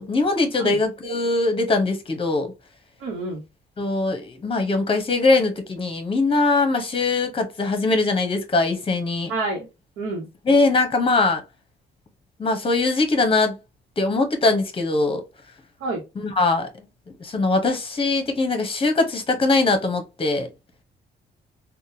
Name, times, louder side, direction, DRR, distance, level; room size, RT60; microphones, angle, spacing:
voice 1, 0.0-2.5 3.8-9.3 10.4-11.4 12.4-13.6 14.0-15.2 16.1-16.9 17.2-20.5, left 3 dB, 25° left, 0.9 m, -21 dB
voice 2, 3.0-3.4 9.3-9.7 10.0-10.3 15.8-16.0, right 2 dB, 75° right, 1.0 m, -28 dB
3.6 x 2.3 x 2.7 m
cardioid pair, 90°, 20 cm